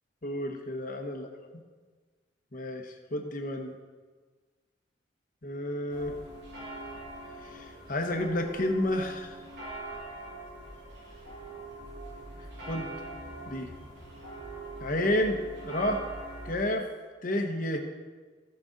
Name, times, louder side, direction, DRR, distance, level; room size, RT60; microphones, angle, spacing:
voice 1, 0.2-1.3 2.5-3.7 5.4-6.2 7.4-9.3 12.7-12.9 13.5-13.7 14.8-16.0 16.4-16.9 17.2-17.8, left 1 dB, 45° left, 4 dB, 1.0 m, -30 dB
sound 1, 5.9-16.5, right 2 dB, 65° right, 2.5 m, -43 dB
15.0 x 6.3 x 3.9 m, 1.4 s
head